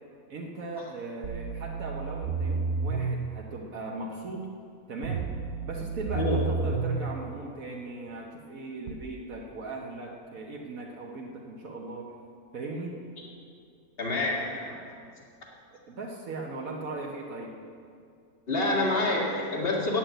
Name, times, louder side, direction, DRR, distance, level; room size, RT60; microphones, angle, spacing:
voice 1, 0.3-4.5 4.9-5.3 5.6-12.1 12.5-13.0 15.7-17.6, right 2 dB, 65° right, -1 dB, 1.4 m, -38 dB
sound 1, 1.2-3.2 5.0-7.0 8.9-9.0, right 4 dB, 90° right, 1.2 m, -31 dB
voice 2, 14.0-14.9 18.5-20.0, left 2 dB, 40° left, -3 dB, 2.2 m, -27 dB
9.0 x 8.6 x 8.9 m, 2.4 s
omnidirectional pair, 1.6 m